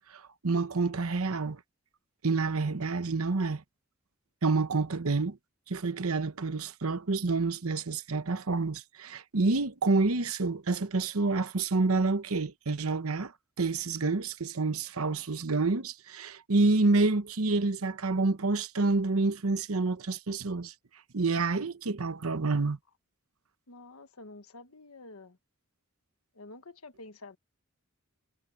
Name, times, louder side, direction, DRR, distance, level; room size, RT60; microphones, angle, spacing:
voice 1, 0.1-1.6 2.2-3.6 4.4-5.4 5.7-13.3 13.6-20.7 21.1-22.8, right 3 dB, 80° right, 1.0 m, -28 dB
voice 2, 23.7-25.4 26.3-27.4, left 2 dB, 80° left, 1.5 m, -48 dB
head